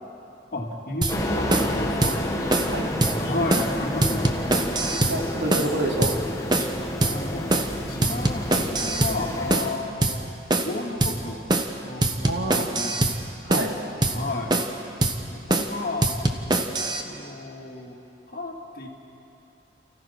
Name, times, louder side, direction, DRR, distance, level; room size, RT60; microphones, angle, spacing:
voice 1, 0.5-2.2 3.1-4.4 7.0-10.3 10.6-11.4 11.8-13.0 14.0-14.5 15.3-16.1 17.0-18.0 18.3-18.9, left 2 dB, 50° left, 0 dB, 2.3 m, -32 dB
sound 1, 1.0-1.2 1.5-1.7 2.0-2.2 2.5-2.7 3.0-3.2 3.5-3.7 4.0-5.2 5.5-5.7 6.0-6.2 6.5-6.7 7.0-7.2 7.5-7.7 8.0-9.2 9.5-9.7 10.0-10.2 10.5-10.7 11.0-11.2 11.5-11.7 12.0-13.2 13.5-13.7 14.0-14.2 14.5-14.8 15.0-15.2 15.5-15.7 16.0-17.0, right 2 dB, 25° right, 1.0 m, -23 dB
sound 2, 1.1-9.7, left 1 dB, 20° left, 1.4 m, -30 dB
voice 2, 5.1-6.1 12.2-12.7 13.4-13.8, right 1 dB, 80° right, 0 dB, 2.5 m, -27 dB
29.5 x 15.0 x 5.9 m, 2.8 s
head